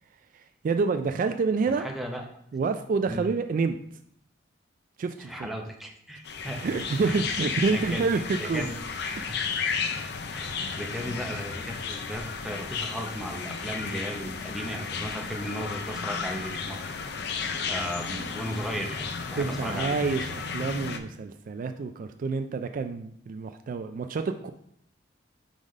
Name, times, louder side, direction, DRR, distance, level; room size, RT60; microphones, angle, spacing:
voice 1, 0.3-1.8 2.5-3.8 5.0-5.5 6.6-8.8 9.2-9.4 18.1-18.3 19.3-24.5, right 4 dB, 50° right, 8 dB, 0.3 m, -28 dB
voice 2, 1.8-2.2 3.1-3.3 5.2-6.6 7.1-7.2 7.7-8.8 9.2-9.4 10.3-16.8 17.7-19.0 19.3-19.9, equal, ahead, 1 dB, 0.8 m, -36 dB
sound 1, 6.3-21.0, left 5 dB, 65° left, 0.5 m, -33 dB
4.8 x 3.9 x 5.2 m, 0.69 s
head